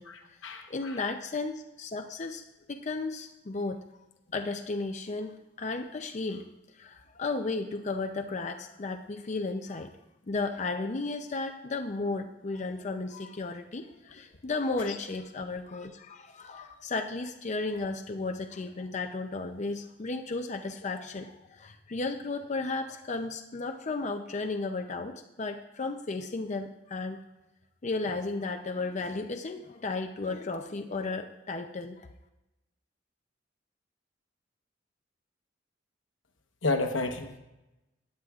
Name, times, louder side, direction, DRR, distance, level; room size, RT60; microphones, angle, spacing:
voice 1, 0.1-1.0 14.9-15.0 36.6-37.3, left 2 dB, 85° left, 5 dB, 1.1 m, -31 dB
voice 2, 0.7-2.4 2.7-3.8 4.3-6.4 6.8-9.9 10.3-27.2 27.8-32.1, left 3 dB, 40° left, 5 dB, 0.5 m, -34 dB
16.0 x 9.5 x 2.4 m, 0.96 s
head